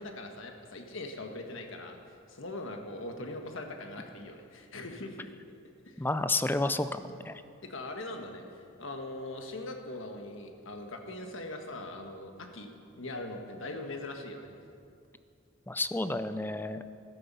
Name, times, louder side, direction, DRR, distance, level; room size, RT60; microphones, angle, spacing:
voice 1, 0.0-5.3 5.8-6.1 7.6-12.7 13.0-14.5, left 2 dB, 65° left, 3 dB, 1.5 m, -41 dB
voice 2, 6.0-7.4 15.7-16.8, left 2 dB, 10° left, 11 dB, 0.4 m, -31 dB
13.5 x 12.5 x 5.5 m, 2.5 s
head